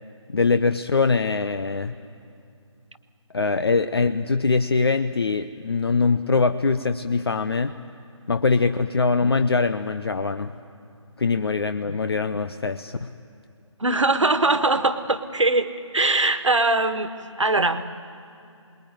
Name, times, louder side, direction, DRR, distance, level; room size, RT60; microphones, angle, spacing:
voice 1, 0.3-1.9 3.3-7.7 8.3-10.5 11.2-13.1, left 4 dB, 50° left, 10 dB, 0.8 m, -22 dB
voice 2, 13.8-17.1 17.4-17.8, right 2 dB, 65° right, 10 dB, 1.6 m, -21 dB
28.5 x 21.0 x 9.3 m, 2.5 s
figure-of-eight pair, 155°, 16 cm